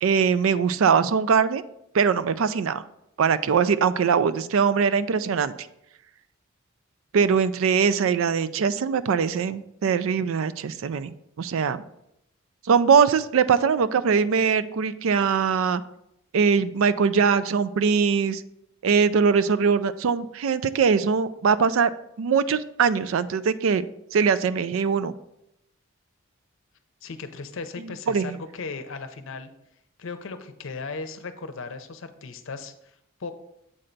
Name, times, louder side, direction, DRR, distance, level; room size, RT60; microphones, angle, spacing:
voice 1, 0.0-1.6 1.9-2.8 3.2-5.5 7.1-11.8 12.7-15.8 16.3-18.4 18.8-21.9 22.2-23.9 24.1-25.1 28.1-28.4, right 6 dB, 70° right, 14 dB, 0.4 m, -22 dB
voice 2, 27.0-29.5 30.0-33.3, left 4 dB, 65° left, 9 dB, 0.6 m, -37 dB
7.6 x 4.4 x 3.9 m, 0.80 s
head